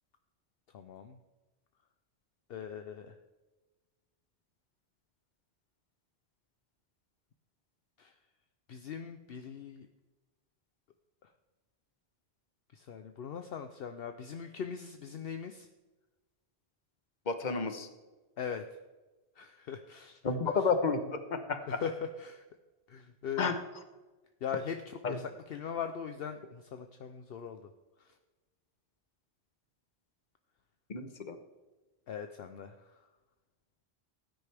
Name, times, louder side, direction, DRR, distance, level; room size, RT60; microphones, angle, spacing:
voice 1, 0.7-1.2 2.5-3.1 8.0-8.1 8.7-9.9 12.7-15.7 18.4-18.6 19.4-20.2 20.4-20.6 21.7-22.4 22.9-23.5 24.4-27.7 32.1-32.7, left 7 dB, 65° left, 7 dB, 0.9 m, -40 dB
voice 2, 17.3-17.9 20.2-21.6 23.4-23.6 25.0-25.2 30.9-31.4, left 4 dB, 45° left, 8 dB, 1.2 m, -31 dB
17.0 x 9.9 x 3.4 m, 1.2 s
omnidirectional pair, 1.1 m